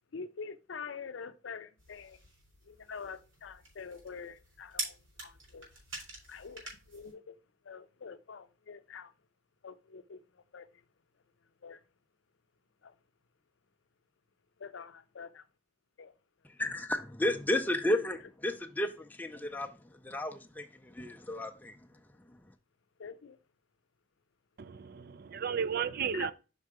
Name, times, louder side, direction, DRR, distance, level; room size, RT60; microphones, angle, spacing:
voice 1, 0.1-2.2 2.6-5.7 6.3-7.4 7.6-9.1 9.6-10.7 11.6-11.8 12.8-12.9 14.6-15.4 16.0-16.1 17.9-18.1 23.0-23.4 26.1-26.3, left 5 dB, 70° left, 0.5 m, -45 dB
sound 1, 1.8-7.1, right 3 dB, 85° right, 4.1 m, -45 dB
voice 2, 16.6-18.2 18.4-19.7 20.0-21.8, left 1 dB, 10° left, 0.5 m, -32 dB
voice 3, 24.6-26.3, right 7 dB, 50° right, 0.4 m, -34 dB
5.4 x 4.7 x 4.8 m
head